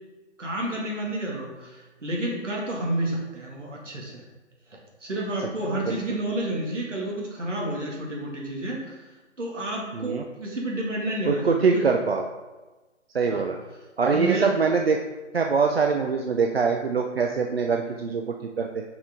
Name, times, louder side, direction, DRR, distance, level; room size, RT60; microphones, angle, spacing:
voice 1, 0.4-4.2 4.7-9.0 9.4-11.8 13.3-13.5 14.1-14.5, right 1 dB, 70° right, -2 dB, 2.2 m, -30 dB
voice 2, 5.9-6.2 9.9-10.2 11.2-12.2 13.1-13.6 14.0-15.0 15.3-18.8, right 5 dB, 55° right, 3 dB, 0.6 m, -23 dB
6.5 x 5.0 x 3.7 m, 1.2 s
figure-of-eight pair, 145°, 37 cm